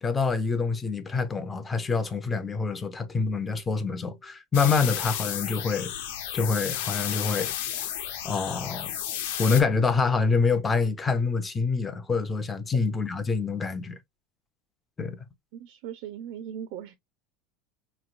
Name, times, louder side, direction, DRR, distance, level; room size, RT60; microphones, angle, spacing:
voice 1, 0.0-5.9 6.3-7.9 8.2-8.9 9.4-14.0 15.0-15.2, left 4 dB, 15° left, 0.5 m, -26 dB
sound 1, 4.5-9.6, left 10 dB, 80° left, 1.0 m, -32 dB
voice 2, 15.5-16.9, right 9 dB, 60° right, 0.5 m, -38 dB
4.9 x 3.1 x 2.4 m
cardioid pair, 175°, 0 cm